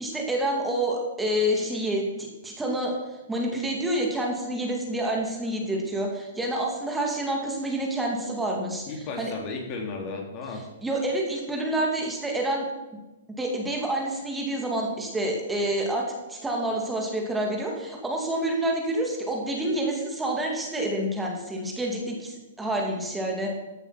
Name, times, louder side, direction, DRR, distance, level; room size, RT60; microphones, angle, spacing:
voice 1, 0.0-8.9 9.2-9.3 10.8-12.7 13.4-23.5, right 1 dB, 10° right, 0 dB, 2.9 m, -28 dB
voice 2, 8.9-10.6, left 3 dB, 40° left, 2 dB, 3.4 m, -34 dB
15.0 x 8.9 x 6.1 m, 1.1 s
hypercardioid pair, 125°, 0 cm